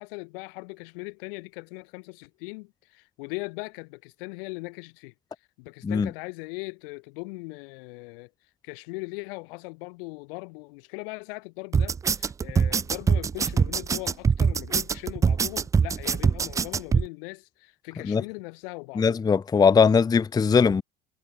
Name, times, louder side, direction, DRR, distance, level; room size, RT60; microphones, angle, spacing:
voice 1, 0.0-5.1 5.6-8.3 8.6-19.2, left 28 dB, 70° left, 2.0 m, -39 dB
sound 1, 11.7-17.0, right 6 dB, 10° right, 0.3 m, -23 dB
voice 2, 19.0-20.8, left 5 dB, 15° left, 0.7 m, -20 dB
supercardioid pair, 120°, 29 cm